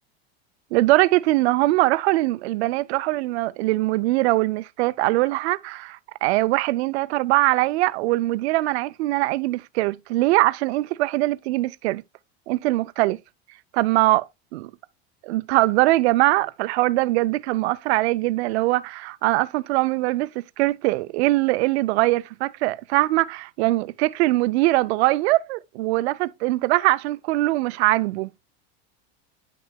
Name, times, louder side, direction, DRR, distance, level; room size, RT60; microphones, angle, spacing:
voice 1, 0.7-12.0 12.5-13.2 13.7-14.3 14.5-14.7 15.2-20.3 20.6-28.3, right 19 dB, 80° right, 0.5 m, -22 dB
10.0 x 5.9 x 2.3 m
supercardioid pair, 165°, 32 cm